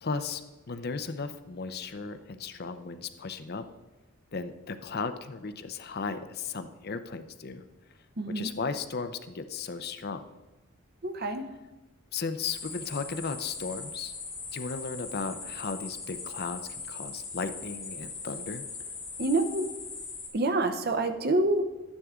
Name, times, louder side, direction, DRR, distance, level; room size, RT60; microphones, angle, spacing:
voice 1, 0.0-3.6 4.3-7.6 8.3-10.2 12.1-14.1 14.5-16.6 16.9-18.6, left 4 dB, 50° left, 9 dB, 0.6 m, -35 dB
voice 2, 8.2-8.5 11.0-11.4 19.2-19.7 20.3-21.6, right 2 dB, 50° right, 7 dB, 0.8 m, -27 dB
sound 1, 12.4-20.3, left 4 dB, 30° left, 4.0 m, -40 dB
12.0 x 9.8 x 3.7 m, 1.1 s
head